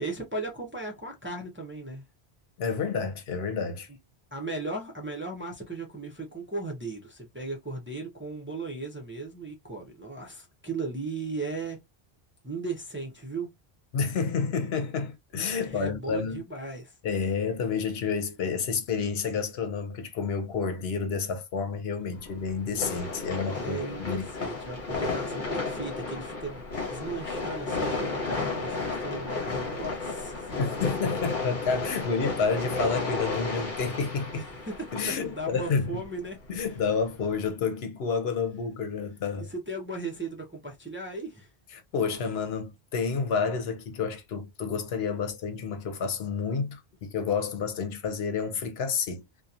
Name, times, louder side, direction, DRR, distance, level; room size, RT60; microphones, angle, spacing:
voice 1, 0.0-2.0 4.3-11.8 12.4-13.5 15.7-16.9 23.5-30.9 34.3-36.4 39.4-41.5, right 2 dB, 15° right, 0.5 m, -37 dB
voice 2, 2.6-3.9 13.9-16.4 17.0-24.3 30.6-34.4 34.9-36.0 36.5-39.5 41.7-49.2, left 5 dB, 75° left, 0.9 m, -30 dB
sound 1, 22.1-37.5, left 3 dB, 50° left, 1.0 m, -33 dB
2.8 x 2.2 x 2.4 m
omnidirectional pair, 1.1 m